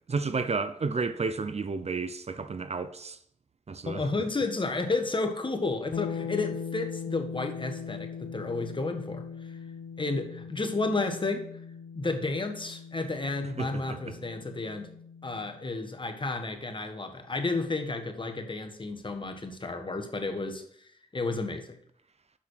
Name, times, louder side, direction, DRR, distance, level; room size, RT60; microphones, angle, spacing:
voice 1, 0.1-3.2 3.7-4.1 13.6-14.1, right 4 dB, 45° right, 0.7 m, -32 dB
voice 2, 3.8-9.3 10.0-11.4 11.9-14.9 15.2-20.6 21.1-21.8, left 3 dB, 35° left, 1.5 m, -32 dB
sound 1, 5.9-15.7, left 6 dB, 75° left, 0.9 m, -40 dB
6.4 x 5.9 x 6.4 m
cardioid pair, 45°, 15 cm